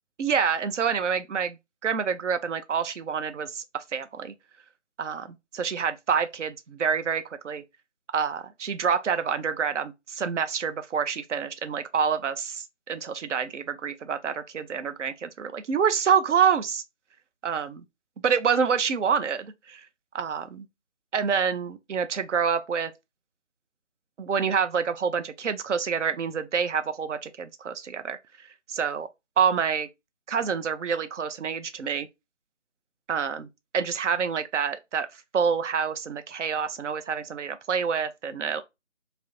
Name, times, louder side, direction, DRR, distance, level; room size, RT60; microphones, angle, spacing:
voice 1, 0.2-1.6 1.8-4.3 5.0-7.6 8.1-16.8 17.4-17.8 18.2-19.9 20.1-20.7 21.1-22.9 24.2-28.2 28.4-29.1 29.4-29.9 30.3-32.1 33.1-33.5 33.7-38.6, right 6 dB, 75° right, 0.5 m, -27 dB
2.3 x 2.0 x 2.8 m
figure-of-eight pair, 170°, 37 cm